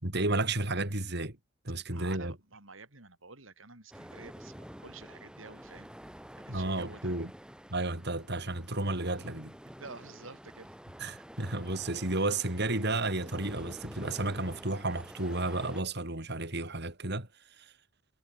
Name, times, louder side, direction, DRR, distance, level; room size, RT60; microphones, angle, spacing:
voice 1, 0.0-1.4 1.6-2.3 6.5-7.3 7.7-9.5 11.0-17.3 17.6-17.7, right 2 dB, 60° right, 4.9 m, -32 dB
voice 2, 1.9-5.9 6.3-7.2 9.8-10.8, right 3 dB, 85° right, 6.3 m, -50 dB
sound 1, 3.9-15.8, equal, 5° right, 3.9 m, -49 dB
head